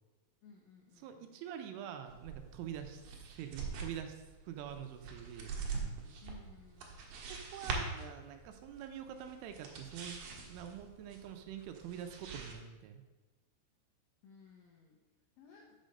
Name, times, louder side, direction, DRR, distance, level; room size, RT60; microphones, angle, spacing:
voice 1, 0.4-1.4 6.2-7.2 14.2-15.0 15.4-15.8, left 5 dB, 85° left, -1 dB, 2.0 m, -58 dB
voice 2, 1.0-5.5 7.5-10.2 10.5-13.0, right 9 dB, 85° right, 6 dB, 3.2 m, -45 dB
sound 1, 2.1-12.5, right 4 dB, 65° right, 2.3 m, -44 dB
6.5 x 6.3 x 6.5 m, 1.2 s
omnidirectional pair, 5.7 m